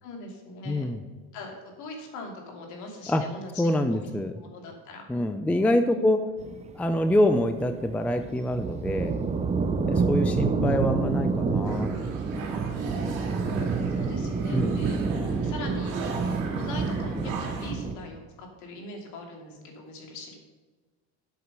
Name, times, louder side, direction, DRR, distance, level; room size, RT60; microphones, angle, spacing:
voice 1, 0.0-0.9 1.3-4.1 4.4-5.1 5.9-6.1 13.9-15.0 15.4-20.4, left 2 dB, 60° left, 2 dB, 2.8 m, -41 dB
voice 2, 0.7-1.0 3.1-3.2 3.6-4.3 5.1-6.2 6.7-9.1 9.9-11.9 14.5-14.8, left 1 dB, 5° left, 8 dB, 0.4 m, -25 dB
sound 1, 6.4-18.0, right 4 dB, 20° right, 0.7 m, -28 dB
sound 2, 11.6-17.7, right 4 dB, 70° right, 2.8 m, -39 dB
8.3 x 7.7 x 6.8 m, 1.3 s
cardioid pair, 140°, 33 cm